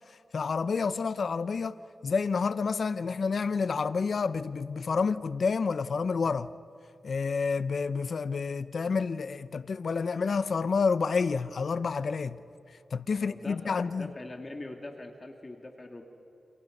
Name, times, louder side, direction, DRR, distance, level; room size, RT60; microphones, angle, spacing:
voice 1, 0.0-1.8 2.0-6.5 7.0-12.4 12.7-14.1, left 5 dB, 65° left, 0.6 m, -29 dB
voice 2, 13.1-16.1, left 2 dB, 35° left, 2.6 m, -42 dB
29.5 x 27.0 x 5.4 m
cardioid pair, 65°, 0 cm